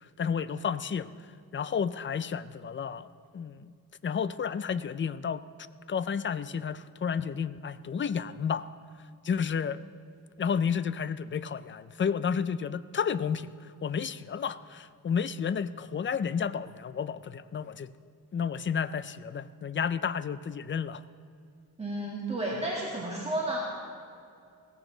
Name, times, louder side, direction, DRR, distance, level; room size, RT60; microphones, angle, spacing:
voice 1, 0.2-1.1 1.5-3.1 3.3-3.7 4.0-5.4 5.9-8.7 9.2-9.8 10.4-13.5 13.8-17.9 18.3-21.0, left 7 dB, 35° left, 15 dB, 0.4 m, -31 dB
voice 2, 21.8-23.6, right 1 dB, 15° right, -5 dB, 1.9 m, -32 dB
17.0 x 15.0 x 3.9 m, 2.4 s
wide cardioid pair, 135°, 37 cm